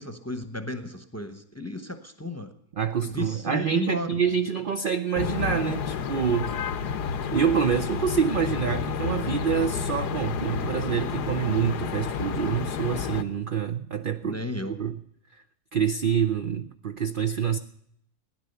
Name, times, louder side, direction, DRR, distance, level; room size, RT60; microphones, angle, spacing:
voice 1, 0.0-2.5 3.0-4.2 14.2-14.7, left 2 dB, 10° left, 8 dB, 0.9 m, -34 dB
voice 2, 2.8-6.6 7.3-14.4 14.7-15.0 15.3-15.4 15.7-17.6, right 7 dB, 60° right, 7 dB, 0.5 m, -26 dB
sound 1, 5.2-13.2, left 6 dB, 85° left, 1.5 m, -30 dB
16.0 x 10.5 x 6.8 m, 0.73 s
omnidirectional pair, 1.7 m